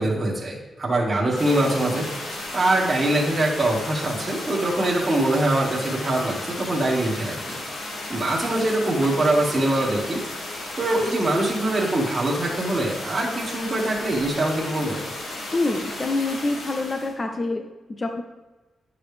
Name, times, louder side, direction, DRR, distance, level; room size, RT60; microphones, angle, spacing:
voice 1, 0.0-7.5 8.1-10.2 10.7-15.1, right 1 dB, 15° right, -5 dB, 1.6 m, -23 dB
sound 1, 1.3-17.1, left 2 dB, 85° left, 1.9 m, -34 dB
voice 2, 15.5-18.2, left 2 dB, 25° left, 4 dB, 0.5 m, -26 dB
11.0 x 6.8 x 3.3 m, 1.2 s
wide cardioid pair, 165°, 0 cm